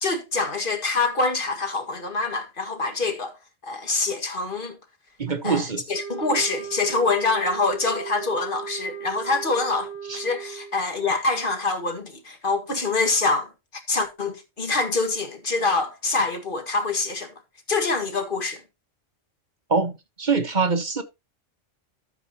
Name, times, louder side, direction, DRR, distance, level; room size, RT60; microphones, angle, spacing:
voice 1, 0.0-3.4 3.6-4.8 5.4-5.6 5.9-13.5 13.9-17.3 17.7-18.6, left 3 dB, 45° left, 1.9 m, -25 dB
voice 2, 5.2-5.8 10.1-10.2 19.7-19.9 20.2-21.0, right 4 dB, 40° right, 1.2 m, -23 dB
sound 1, 5.9-10.8, right 7 dB, 55° right, 2.8 m, -37 dB
13.0 x 7.6 x 2.8 m
omnidirectional pair, 1.3 m